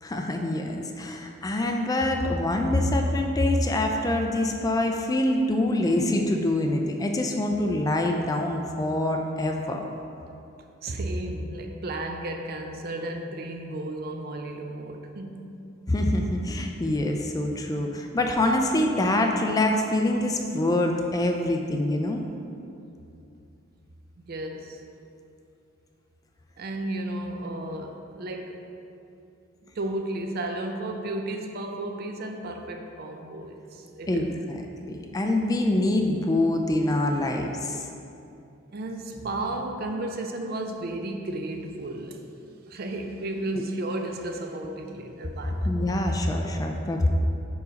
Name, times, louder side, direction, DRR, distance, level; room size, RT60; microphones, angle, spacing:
voice 1, 0.0-9.8 15.9-22.2 34.1-37.8 43.5-43.6 45.4-47.1, left 1 dB, 20° left, 3 dB, 0.3 m, -25 dB
voice 2, 10.8-15.5 24.2-24.8 26.6-28.6 29.8-34.3 38.7-42.2 42.7-45.7, right 1 dB, 50° right, 4 dB, 0.5 m, -33 dB
4.6 x 4.1 x 5.1 m, 2.7 s
head